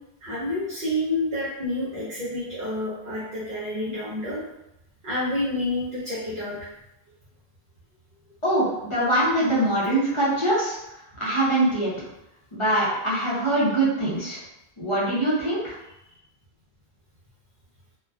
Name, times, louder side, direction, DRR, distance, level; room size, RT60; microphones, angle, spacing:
voice 1, 0.2-4.4 5.0-6.6, left 1 dB, 55° right, -8 dB, 0.8 m, -28 dB
voice 2, 8.4-10.8 11.2-11.9 12.5-14.4 14.8-15.8, right 1 dB, 35° left, -8 dB, 0.6 m, -23 dB
2.3 x 2.3 x 2.3 m, 0.87 s
omnidirectional pair, 1.1 m